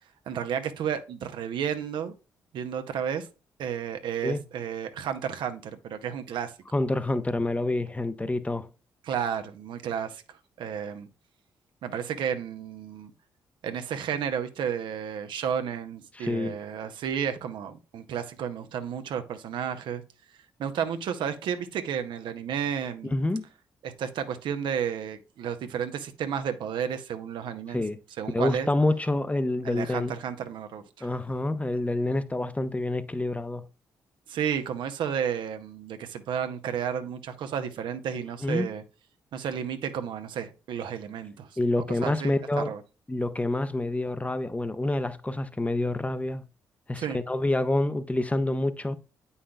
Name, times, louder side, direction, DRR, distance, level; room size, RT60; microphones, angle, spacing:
voice 1, 0.3-2.1 2.5-3.3 3.6-6.5 9.0-10.2 10.6-11.1 11.8-13.1 13.6-20.0 20.6-23.1 23.8-27.8 28.2-28.7 29.6-31.1 34.3-38.8 39.3-41.5 42.0-42.8 47.0-47.2, right 8 dB, 70° right, 0.7 m, -32 dB
voice 2, 6.7-8.7 16.1-16.5 23.0-23.4 27.7-28.0 28.3-30.1 31.0-33.6 38.4-38.7 41.6-42.7 43.1-46.4 46.9-49.0, left 2 dB, 15° left, 0.7 m, -27 dB
8.4 x 5.6 x 2.3 m
hypercardioid pair, 45°, 8 cm